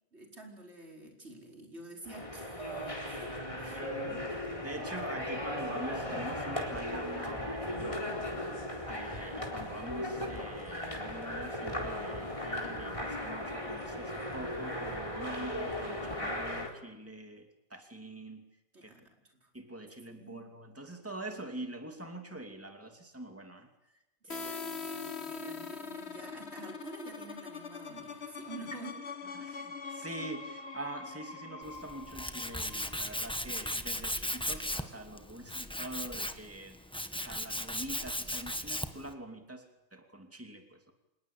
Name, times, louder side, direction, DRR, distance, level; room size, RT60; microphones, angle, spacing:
voice 1, 0.1-4.2 18.7-19.5 20.0-20.5 24.2-29.0 29.4-29.5, right 3 dB, 85° right, 1 dB, 5.2 m, -48 dB
sound 1, 2.0-16.7, left 1 dB, 30° left, 4.3 m, -37 dB
voice 2, 3.7-4.2 4.6-8.5 8.9-18.5 18.8-18.9 19.5-23.7 24.3-24.6 29.3-36.8 37.1-40.9, right 1 dB, 10° right, 4 dB, 2.7 m, -45 dB
sound 2, 24.3-33.9, left 5 dB, 75° left, 2.0 m, -43 dB
Tools, 31.6-39.1, left 1 dB, 5° left, 1.3 m, -37 dB
26.5 x 20.5 x 8.6 m, 0.96 s
omnidirectional pair, 1.1 m